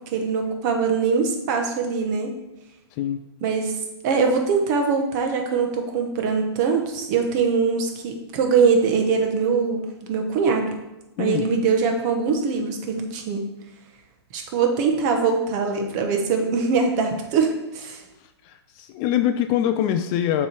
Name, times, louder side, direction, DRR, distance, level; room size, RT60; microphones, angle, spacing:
voice 1, 0.1-2.3 3.4-3.7 4.0-9.8 10.1-10.7 11.2-13.5 14.3-18.0, right 5 dB, 40° right, 3 dB, 1.1 m, -22 dB
voice 2, 2.9-3.2 11.2-11.5 18.4-20.5, left 10 dB, 30° left, 8 dB, 0.3 m, -24 dB
7.0 x 3.2 x 4.4 m, 0.97 s
hypercardioid pair, 130°, 14 cm